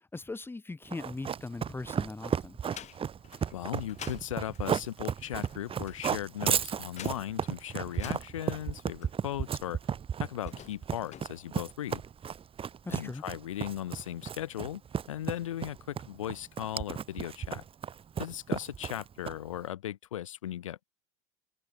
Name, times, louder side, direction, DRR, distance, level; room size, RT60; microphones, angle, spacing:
voice 1, 0.1-2.6 12.8-13.2, left 3 dB, 15° left, 1.7 m, -40 dB
Run, 0.9-19.6, right 8 dB, 35° right, 2.2 m, -34 dB
sound 1, 1.2-2.1 2.5-9.5 10.3-11.2, left 10 dB, 45° left, 7.8 m, -50 dB
voice 2, 3.5-9.8 10.2-12.0 12.9-14.8 15.1-17.6 18.2-20.8, left 12 dB, 85° left, 0.9 m, -37 dB
hypercardioid pair, 75°, 16 cm